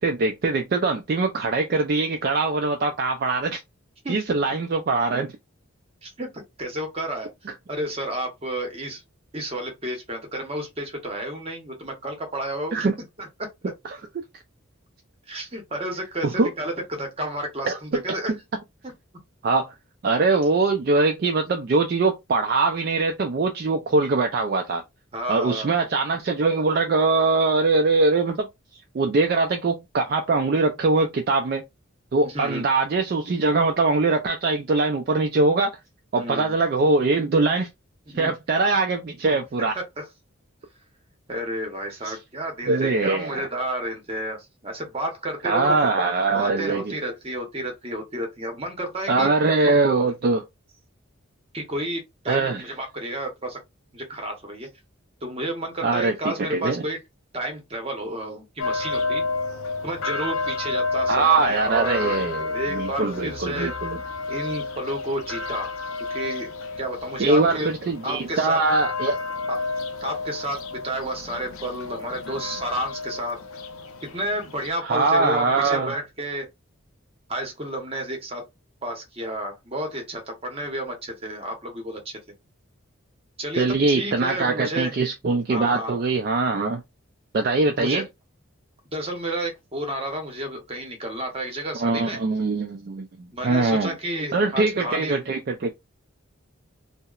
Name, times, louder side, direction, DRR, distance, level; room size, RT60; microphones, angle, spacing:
voice 1, 0.0-3.6 4.1-5.3 7.5-7.6 12.7-12.9 13.8-14.0 16.2-16.5 17.7-17.8 19.4-19.7 20.0-24.8 25.3-28.5 28.9-31.6 32.1-35.7 36.1-37.7 38.1-39.8 42.0-42.2 42.7-43.5 45.4-46.9 49.1-50.4 52.3-52.6 55.8-56.8 61.1-64.0 67.2-69.1 74.8-75.9 83.6-86.8 87.3-88.0 91.8-93.1 93.4-94.0 94.3-95.7, right 3 dB, 45° right, 0.3 m, -22 dB
voice 2, 6.0-7.3 7.7-9.0 9.3-12.9 13.2-13.5 15.3-18.3 25.1-25.7 32.2-32.7 36.1-36.6 38.1-38.3 39.6-39.7 40.0-40.1 41.3-45.8 46.3-49.3 51.5-53.6 53.9-54.7 55.2-57.0 57.3-59.2 59.8-62.2 62.5-63.7 64.3-65.7 66.1-67.7 68.0-68.6 69.5-69.6 70.0-73.4 74.0-76.5 77.3-78.4 78.8-82.2 83.4-84.9 85.5-85.9 87.8-88.0 88.9-92.2 93.3-95.2, right 1 dB, 25° right, 0.7 m, -31 dB
sound 1, 58.6-74.7, left 3 dB, 80° left, 0.6 m, -31 dB
2.8 x 2.1 x 2.3 m
head